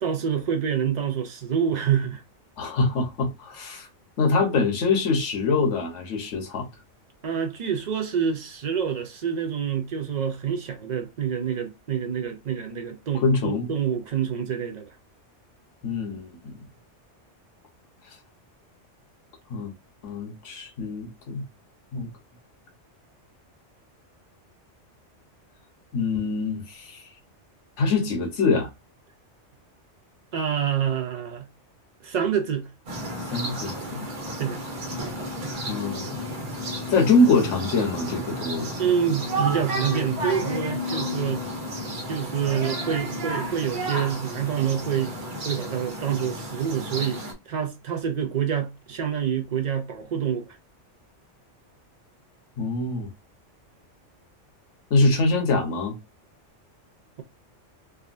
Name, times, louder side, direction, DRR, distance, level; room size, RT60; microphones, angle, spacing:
voice 1, 0.0-2.2 7.2-14.9 30.3-31.5 32.0-32.7 34.4-34.6 38.8-41.4 42.1-45.1 45.4-50.6, right 8 dB, 65° right, 0.4 m, -27 dB
voice 2, 2.6-3.9 4.2-6.7 13.1-13.7 15.8-16.6 19.5-19.7 20.0-21.5 21.9-22.1 25.9-27.0 27.8-28.7 33.3-34.1 35.7-36.3 36.9-38.7 52.6-53.1 54.9-56.0, left 3 dB, 80° left, 1.2 m, -24 dB
sound 1, 32.9-47.3, equal, 85° right, 1.3 m, -32 dB
3.5 x 2.2 x 2.5 m
omnidirectional pair, 1.2 m